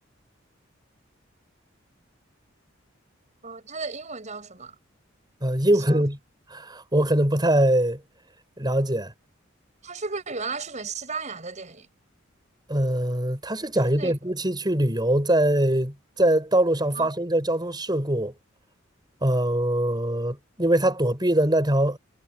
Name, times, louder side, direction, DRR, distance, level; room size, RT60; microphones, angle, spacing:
voice 1, 3.4-4.7 5.7-6.0 9.8-11.9 13.8-14.1 16.9-17.1, right 4 dB, 35° right, 7.2 m, -34 dB
voice 2, 5.4-6.2 6.5-8.0 8.6-9.1 12.7-18.3 19.2-22.0, right 1 dB, 20° right, 6.8 m, -23 dB
head